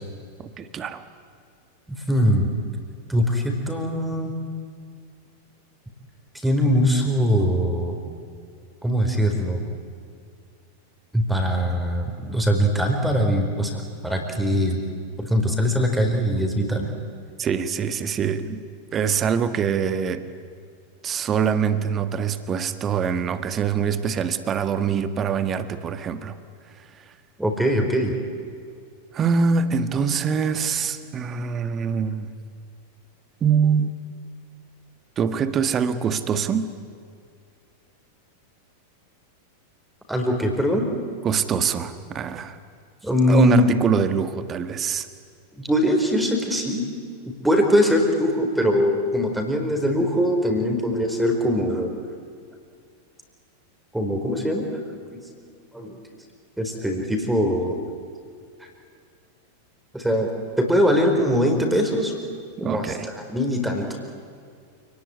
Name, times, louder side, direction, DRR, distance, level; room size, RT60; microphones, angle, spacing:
voice 1, 0.4-1.0 17.4-18.6 18.9-20.3 21.0-26.4 29.1-32.3 33.4-33.9 35.2-36.7 41.2-42.6 43.3-45.1 62.6-63.1, right 6 dB, 25° right, 11 dB, 1.6 m, -24 dB
voice 2, 2.1-2.5 3.1-4.3 6.4-8.0 8.8-9.6 11.1-14.8 15.2-16.9 27.4-28.1 40.1-40.9 43.0-43.7 45.6-46.9 47.3-51.9 53.9-54.8 55.1-55.2 55.7-56.0 56.6-57.8 58.6-58.7 59.9-60.3 60.6-62.1 62.6-64.0, equal, 5° right, 3 dB, 4.6 m, -22 dB
28.5 x 19.5 x 9.8 m, 2.2 s
figure-of-eight pair, 90°, 0 cm